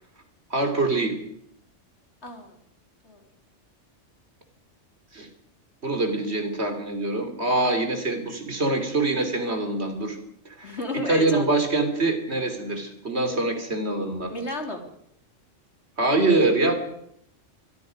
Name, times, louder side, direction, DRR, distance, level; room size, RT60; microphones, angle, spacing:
voice 1, 0.5-1.1 5.1-5.3 5.8-10.2 10.6-14.3 16.0-16.8, right 2 dB, 60° right, 6 dB, 3.6 m, -24 dB
voice 2, 2.2-2.5 3.0-3.2 10.6-11.6 14.3-14.9, left 1 dB, 60° left, 3 dB, 3.9 m, -32 dB
24.5 x 22.5 x 5.3 m, 0.74 s
omnidirectional pair, 1.3 m